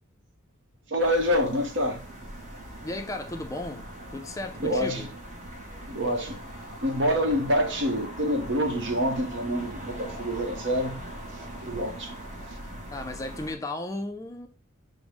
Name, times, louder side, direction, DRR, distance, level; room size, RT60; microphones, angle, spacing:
voice 1, 0.9-2.0 4.6-5.1 5.9-6.4 6.8-11.0 11.6-12.2, equal, 65° right, 0.9 m, -26 dB
sound 1, 1.0-13.5, right 1 dB, 40° right, 1.0 m, -41 dB
voice 2, 2.8-5.1 12.9-14.5, left 2 dB, 15° left, 0.3 m, -35 dB
6.0 x 2.0 x 3.4 m
head